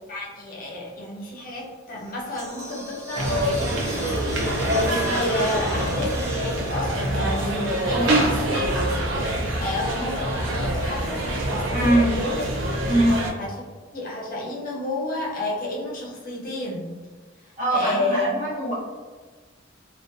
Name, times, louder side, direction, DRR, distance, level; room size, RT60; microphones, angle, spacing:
voice 1, 0.1-8.7 9.3-12.4 13.4-13.7 13.9-16.9 17.4-18.3, left 2 dB, 45° left, -3 dB, 0.6 m, -31 dB
sound 1, 2.0-8.3, right 1 dB, 15° right, 0.4 m, -39 dB
sound 2, 3.1-13.3, right 1 dB, 75° right, 0.4 m, -25 dB
voice 2, 11.7-12.1 12.9-13.2 17.6-18.7, right 1 dB, 40° right, -8 dB, 0.9 m, -22 dB
2.5 x 2.2 x 2.5 m, 1.4 s
head